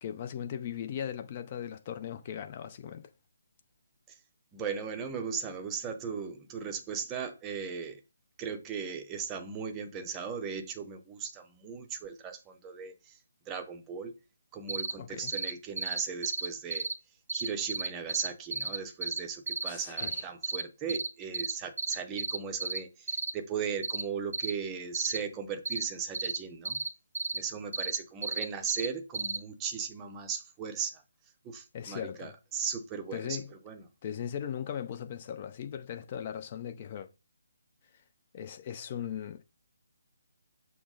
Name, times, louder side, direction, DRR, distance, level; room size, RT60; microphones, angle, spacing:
voice 1, 0.0-3.1 15.0-15.3 19.7-20.3 31.7-32.4 33.1-33.5 34.0-37.1 38.3-39.4, left 9 dB, 30° left, 0.5 m, -38 dB
voice 2, 4.5-8.0 8.4-13.1 13.5-14.1 14.5-16.9 17.3-26.8 27.3-31.0 31.4-33.4 33.7-33.8, right 6 dB, 15° right, 0.7 m, -37 dB
sound 1, 14.7-14.9 15.3-15.5 15.8-16.9 17.3-19.2 19.5-19.7 20.0-20.6 20.9-21.1 21.3-21.5 21.8-22.8 23.1-23.3 23.8-24.0 24.3-24.5 24.9-25.2 25.7-25.8 26.1-26.4 26.7-26.9 27.2-27.4 27.7-28.9 29.1-29.4, right 3 dB, 60° right, 0.5 m, -32 dB
5.9 x 2.1 x 3.9 m
figure-of-eight pair, 145°, 0 cm